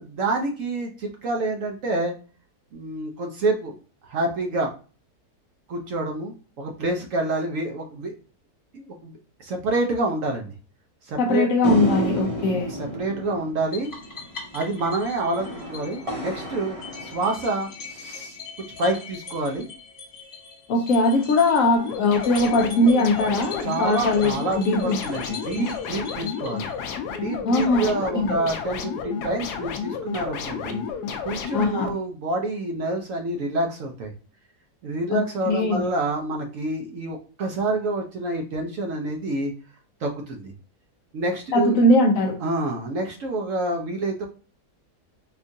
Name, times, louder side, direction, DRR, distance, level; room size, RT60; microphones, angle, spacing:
voice 1, 0.0-2.1 2.7-3.7 4.0-4.7 5.7-8.1 8.8-9.1 9.4-10.5 11.1-11.5 12.7-13.9 14.5-18.4 18.8-19.7 23.6-26.7 27.2-30.8 31.2-34.1 34.8-39.5 40.0-40.5 41.1-41.8 42.4-44.3, right 2 dB, 65° right, 2 dB, 0.9 m, -27 dB
voice 2, 11.2-12.7 20.7-25.0 25.6-25.7 27.5-28.3 31.5-31.9 35.1-35.9 41.5-42.4, left 2 dB, 65° left, 3 dB, 0.9 m, -21 dB
sound 1, 11.6-18.1, equal, 25° right, 0.8 m, -31 dB
sound 2, 13.7-27.2, left 5 dB, 40° left, 1.7 m, -42 dB
sound 3, 21.8-31.9, left 6 dB, 85° left, 1.1 m, -31 dB
4.4 x 2.4 x 2.6 m, 0.36 s
omnidirectional pair, 1.7 m